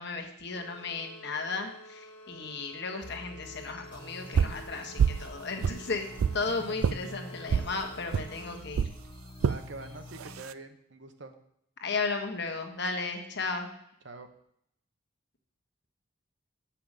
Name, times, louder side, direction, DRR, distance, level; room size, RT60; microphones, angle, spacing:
voice 1, 0.0-6.1 6.3-8.8 11.8-13.7, left 4 dB, 55° left, 3 dB, 1.3 m, -35 dB
sound 1, 0.5-8.6, equal, 85° left, 1.2 m, -51 dB
sound 2, 3.0-10.4, left 2 dB, 25° left, 0.6 m, -48 dB
sound 3, 4.3-4.6 5.0-5.3 5.6-6.4 6.8-7.0 7.5-7.7 8.1-8.3 8.7-8.9 9.4-9.6 10.2-10.5, right 7 dB, 80° right, 0.4 m, -26 dB
voice 2, 9.5-11.3 14.0-14.3, right 2 dB, 55° right, 7 dB, 1.0 m, -45 dB
8.6 x 5.8 x 6.6 m, 0.73 s
head